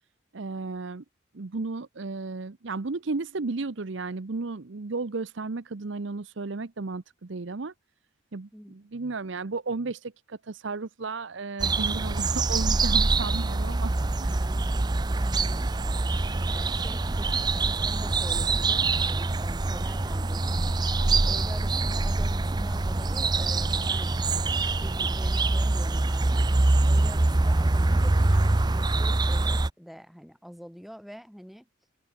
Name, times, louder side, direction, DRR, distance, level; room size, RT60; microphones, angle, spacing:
voice 1, 0.3-1.0 1.3-7.7 8.3-13.9 14.2-14.3, right 3 dB, 65° right, 0.7 m, -34 dB
sound 1, 11.6-29.7, right 2 dB, 20° right, 0.5 m, -25 dB
voice 2, 14.3-15.9 16.5-20.7 21.0-26.5 26.8-31.7, equal, ahead, 5.8 m, -45 dB
head